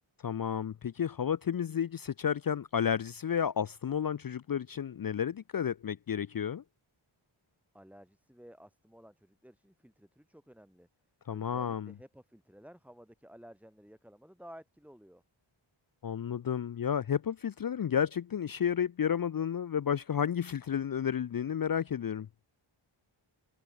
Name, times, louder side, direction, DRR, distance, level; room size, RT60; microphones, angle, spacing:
voice 1, 0.2-6.6 11.3-11.9 16.0-22.3, left 8 dB, 45° left, 0.5 m, -32 dB
voice 2, 7.7-10.9 11.3-15.2, equal, 5° right, 6.5 m, -54 dB
wide cardioid pair, 65°, 50 cm